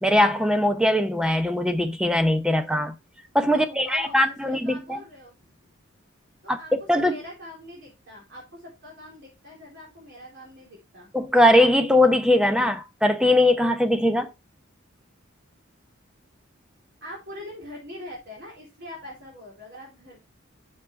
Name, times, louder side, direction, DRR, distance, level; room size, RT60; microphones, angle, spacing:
voice 1, 0.0-2.9 3.3-5.0 6.5-7.2 11.1-14.3, left 1 dB, 5° right, 0.7 m, -21 dB
voice 2, 3.5-5.3 6.4-6.7 7.1-11.1 17.0-20.2, left 1 dB, 55° right, 3.8 m, -42 dB
7.8 x 7.2 x 3.4 m
head